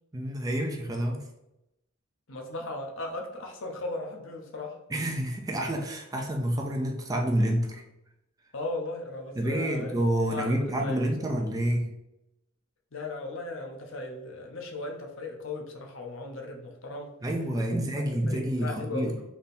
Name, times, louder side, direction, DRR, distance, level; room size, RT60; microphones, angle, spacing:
voice 1, 0.1-1.2 4.9-7.8 9.4-11.9 17.2-19.1, right 1 dB, 15° right, 1 dB, 0.5 m, -28 dB
voice 2, 2.3-4.8 8.5-10.0 10.3-11.1 12.9-17.2 17.7-17.8 18.3-19.2, left 2 dB, 65° left, 2 dB, 0.7 m, -37 dB
3.5 x 2.8 x 4.1 m, 0.88 s
head